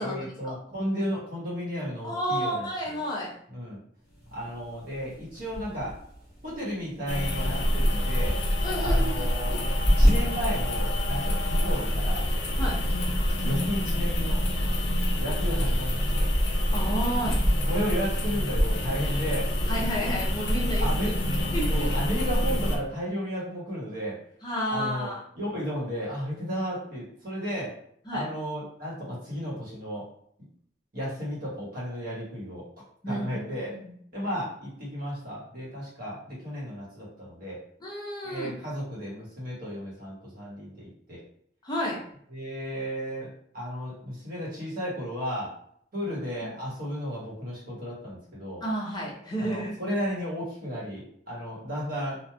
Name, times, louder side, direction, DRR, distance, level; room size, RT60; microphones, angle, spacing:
voice 1, 0.0-3.0 3.5-3.8 4.3-6.0 6.4-8.4 8.8-12.3 13.4-14.4 15.2-16.3 17.7-19.5 20.8-21.2 21.7-24.2 24.7-27.7 28.1-30.1 30.9-33.7 34.1-37.6 38.2-41.2 42.3-45.5 45.9-48.6 49.4-52.2, equal, 55° right, -6 dB, 1.3 m, -34 dB
voice 2, 2.0-3.3 8.6-9.3 12.6-12.8 16.7-17.4 19.7-21.9 24.4-25.2 28.1-28.2 33.0-33.9 37.8-38.6 41.6-42.0 46.4-46.5 48.6-49.8, equal, 25° left, -4 dB, 0.7 m, -31 dB
sound 1, 4.0-18.8, equal, 15° right, 1.0 m, -31 dB
sound 2, 7.1-22.8, equal, 75° left, 0.5 m, -26 dB
3.1 x 2.4 x 2.3 m, 0.66 s
head